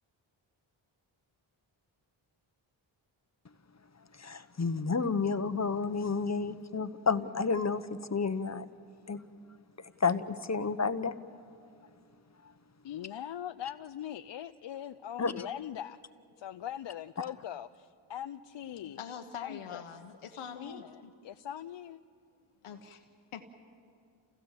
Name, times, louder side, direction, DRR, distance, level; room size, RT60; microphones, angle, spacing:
voice 1, 4.1-8.6 9.1-9.2 9.8-11.1 15.2-15.3, left 5 dB, 35° left, 1.1 m, -31 dB
voice 2, 12.8-16.0 16.4-19.0 19.4-19.8 20.3-22.0, left 10 dB, 60° left, 0.6 m, -41 dB
voice 3, 18.7-21.1 22.6-23.5, left 7 dB, 85° left, 1.2 m, -44 dB
29.0 x 16.0 x 7.4 m
cardioid pair, 45°, 50 cm